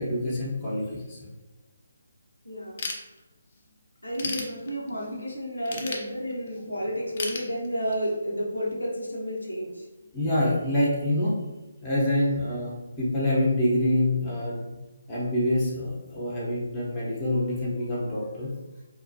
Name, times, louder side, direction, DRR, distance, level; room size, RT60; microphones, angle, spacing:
voice 1, 0.0-1.3 10.1-11.4 11.8-14.6 15.1-18.5, left 1 dB, 20° left, -7 dB, 0.7 m, -26 dB
voice 2, 2.4-2.8 4.0-10.1 16.2-16.4, equal, 90° left, -3 dB, 0.7 m, -31 dB
Ratchet pawl / Tools, 2.8-3.6 4.0-5.1 5.7-6.6 7.2-8.1, left 4 dB, 45° left, 0.4 m, -34 dB
2.3 x 2.1 x 2.6 m, 1.0 s
figure-of-eight pair, 145°, 0 cm